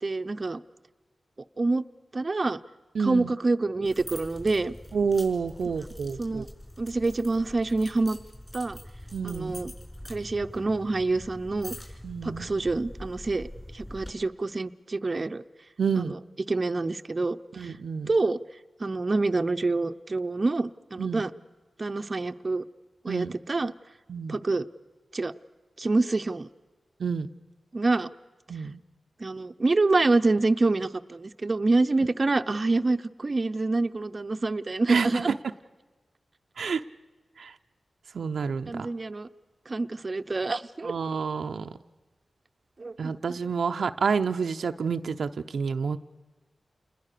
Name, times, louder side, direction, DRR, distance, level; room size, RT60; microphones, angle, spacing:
voice 1, 0.0-0.6 1.6-1.8 2.1-2.6 3.0-4.7 6.2-6.5 6.8-8.2 8.5-8.8 9.2-9.7 10.1-11.7 12.2-13.5 13.7-15.4 16.0-16.2 16.5-17.7 18.1-18.4 18.8-21.3 21.8-22.6 23.0-23.7 24.3-24.7 25.1-25.3 25.8-26.5 27.7-28.1 29.2-35.3 38.7-39.3 39.7-40.9 42.8-43.1, right 3 dB, 45° right, 8 dB, 0.8 m, -26 dB
voice 2, 2.9-3.3 4.9-6.4 9.1-9.6 12.0-12.5 15.8-16.1 17.5-18.1 21.0-21.2 23.1-23.4 24.1-24.4 27.0-27.3 28.5-28.8 34.9-35.2 36.6-36.8 37.4-37.5 38.1-38.9 40.8-41.7 43.0-46.0, right 5 dB, 85° right, 7 dB, 0.7 m, -29 dB
sound 1, 3.8-14.1, left 1 dB, 15° left, 5.7 m, -44 dB
28.5 x 21.0 x 6.7 m, 1.2 s
cardioid pair, 65°, 0 cm